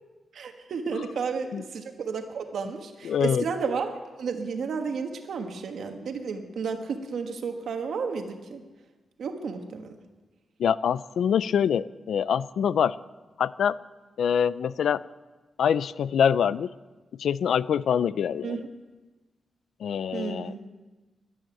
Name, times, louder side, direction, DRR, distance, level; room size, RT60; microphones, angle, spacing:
voice 1, 0.3-8.6 9.2-9.9 18.4-18.7 20.1-20.6, right 5 dB, 70° right, 5 dB, 1.4 m, -32 dB
voice 2, 3.0-3.4 10.6-13.0 13.4-13.8 14.2-15.0 15.6-16.7 17.2-18.6 19.8-20.5, left 8 dB, 80° left, 18 dB, 0.4 m, -25 dB
12.5 x 11.5 x 9.2 m, 1.2 s
wide cardioid pair, 165°, 0 cm